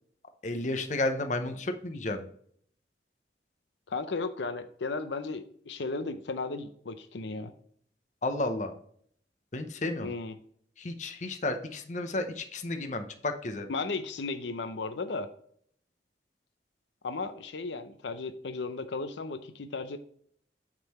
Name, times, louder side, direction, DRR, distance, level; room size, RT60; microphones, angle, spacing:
voice 1, 0.4-2.3 8.2-8.8 9.5-10.1 10.8-13.7, left 2 dB, 40° left, 7 dB, 0.8 m, -32 dB
voice 2, 3.9-7.5 10.0-10.3 13.7-15.3 17.0-20.0, left 3 dB, 80° left, 10 dB, 0.6 m, -35 dB
8.9 x 3.8 x 4.2 m, 0.62 s
head